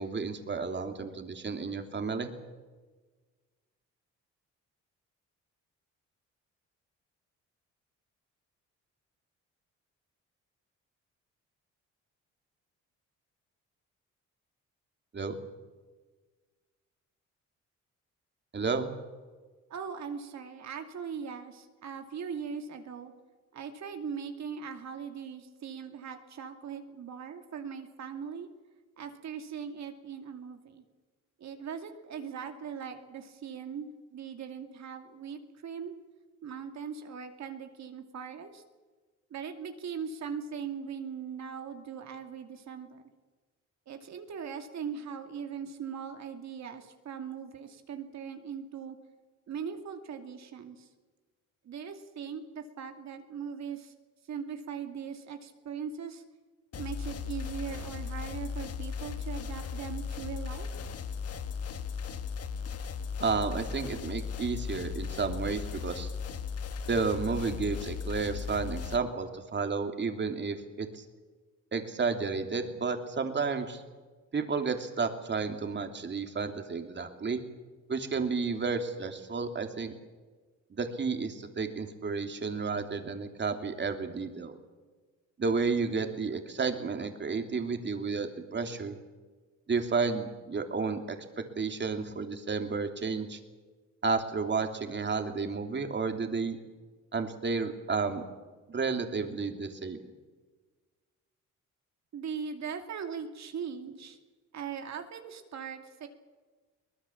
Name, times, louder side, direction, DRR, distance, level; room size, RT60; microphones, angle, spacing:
voice 1, 0.0-2.3 15.1-15.4 18.5-18.9 63.2-66.1 66.9-71.0 71.7-73.8 74.3-77.4 77.9-79.9 80.7-84.5 85.4-89.0 89.7-93.4 94.0-96.6 97.1-98.2 98.7-100.0, right 4 dB, 35° right, 5 dB, 3.0 m, -32 dB
voice 2, 19.7-23.1 23.5-28.5 29.0-30.8 31.4-35.9 36.4-38.6 39.3-43.0 43.9-49.0 49.5-50.9 51.6-53.9 54.3-56.2 56.8-60.7 102.1-104.2 104.5-106.1, right 7 dB, 65° right, 5 dB, 2.6 m, -40 dB
sound 1, 56.7-69.0, left 6 dB, 50° left, 1.6 m, -37 dB
23.0 x 19.5 x 7.3 m, 1.3 s
cardioid pair, 90°, 30 cm